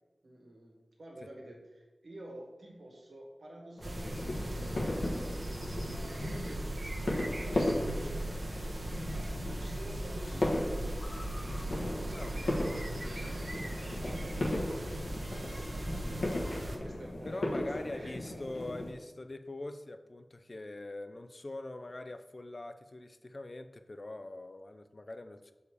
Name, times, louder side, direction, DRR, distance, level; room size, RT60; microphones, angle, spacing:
voice 1, 0.2-13.5 14.0-16.0 16.3-18.5, right 1 dB, 85° right, -1 dB, 1.7 m, -50 dB
sound 1, 3.8-18.9, left 1 dB, 80° left, 1.3 m, -37 dB
sound 2, 3.8-16.8, right 1 dB, 50° right, 1.0 m, -38 dB
voice 2, 17.2-25.5, left 2 dB, 45° left, 9 dB, 0.5 m, -43 dB
6.9 x 4.8 x 4.8 m, 1.2 s
wide cardioid pair, 80°, 0 cm